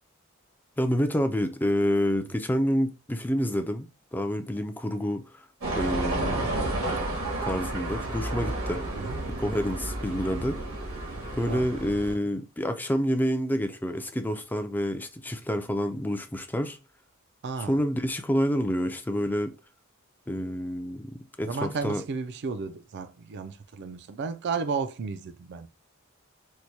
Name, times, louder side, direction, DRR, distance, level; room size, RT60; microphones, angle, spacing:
voice 1, 0.8-5.5 5.8-6.4 7.5-8.8 9.4-10.6 11.3-16.8 17.7-19.5 20.3-22.0, equal, 10° left, 0.4 m, -28 dB
sound 1, 5.6-12.1, right 2 dB, 80° right, 1.4 m, -31 dB
voice 2, 17.4-17.8 21.5-25.7, right 5 dB, 55° right, 0.4 m, -33 dB
4.5 x 2.2 x 2.7 m
head